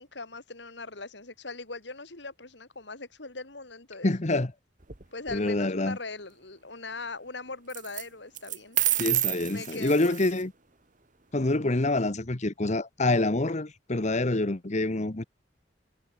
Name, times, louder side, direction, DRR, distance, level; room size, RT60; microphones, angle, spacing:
voice 1, 0.0-4.1 5.1-8.8 9.4-10.3, left 3 dB, 65° left, 3.6 m, -40 dB
voice 2, 4.0-4.5 5.3-6.0 9.0-10.5 11.3-15.2, left 2 dB, 40° left, 1.1 m, -26 dB
sound 1, 4.8-5.4 7.7-8.0 8.4-10.4, right 14 dB, 45° right, 1.9 m, -29 dB
head